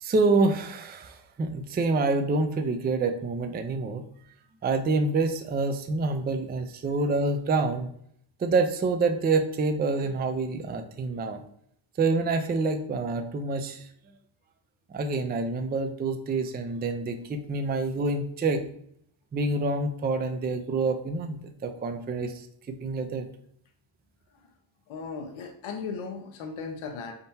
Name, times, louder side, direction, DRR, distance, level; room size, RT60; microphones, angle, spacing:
voice 1, 0.0-4.0 4.6-7.9 8.4-11.4 12.0-13.9 14.9-18.6 19.3-22.3 22.7-23.3, right 3 dB, 20° right, 7 dB, 0.4 m, -27 dB
voice 2, 24.9-27.1, left 5 dB, 70° left, 4 dB, 0.7 m, -36 dB
4.3 x 3.6 x 2.7 m, 0.67 s
cardioid pair, 75°, 50 cm